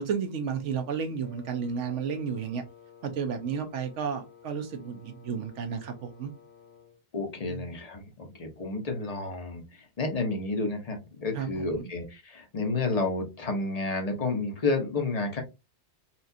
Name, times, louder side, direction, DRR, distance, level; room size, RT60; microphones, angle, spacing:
voice 1, 0.0-2.6 3.0-6.3 7.5-7.6 11.3-11.9, right 6 dB, 85° right, 1.1 m, -32 dB
Wind instrument woodwind instrument, 1.2-7.0, left 7 dB, 15° left, 0.5 m, -53 dB
voice 2, 7.1-9.6 10.0-15.4, left 3 dB, 35° left, 0.9 m, -30 dB
4.2 x 2.4 x 2.7 m
omnidirectional pair, 1.2 m